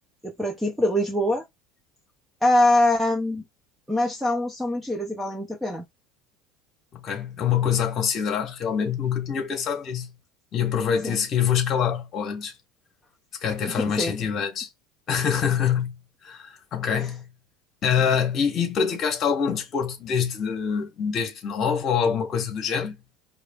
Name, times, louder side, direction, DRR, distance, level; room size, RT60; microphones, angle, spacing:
voice 1, 0.2-1.4 2.4-3.4 3.9-5.8 11.0-11.2 13.7-14.1 17.0-17.1, left 1 dB, 5° right, 0.6 m, -23 dB
voice 2, 6.9-10.1 10.5-12.5 13.4-14.7 15.1-16.0 16.2-17.3 17.8-22.9, left 7 dB, 30° left, 1.4 m, -25 dB
4.7 x 2.9 x 2.4 m
cardioid pair, 165°, 0 cm